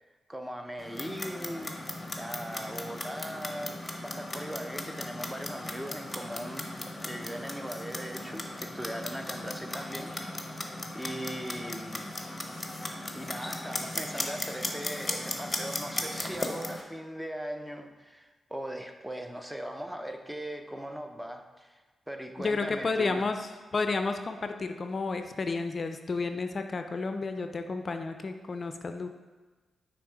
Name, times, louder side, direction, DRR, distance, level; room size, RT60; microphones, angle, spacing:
voice 1, 0.3-1.8 2.2-6.8 7.0-10.6 10.9-12.2 13.1-21.8 22.1-23.3, equal, 5° right, 6 dB, 0.6 m, -39 dB
Clock, 0.8-16.8, left 1 dB, 25° left, 0.9 m, -37 dB
voice 2, 22.4-29.1, left 3 dB, 50° left, 7 dB, 0.4 m, -31 dB
6.1 x 3.3 x 4.6 m, 1.3 s
supercardioid pair, 40°, 0 cm